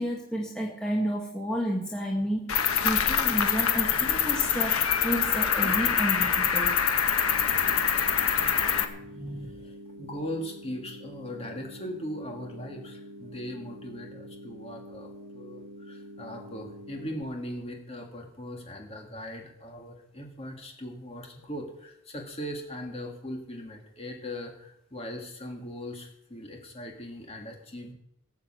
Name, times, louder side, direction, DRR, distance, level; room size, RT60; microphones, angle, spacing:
voice 1, 0.0-6.7 9.2-9.5, equal, 5° left, -3 dB, 1.9 m, -31 dB
Cricket, 2.5-8.8, left 8 dB, 90° left, 1.4 m, -25 dB
sound 1, 7.2-17.2, left 1 dB, 80° right, 1.5 m, -46 dB
voice 2, 7.3-7.7 9.3-27.9, equal, 30° left, 1 dB, 2.7 m, -39 dB
18.0 x 7.4 x 7.9 m, 0.77 s
head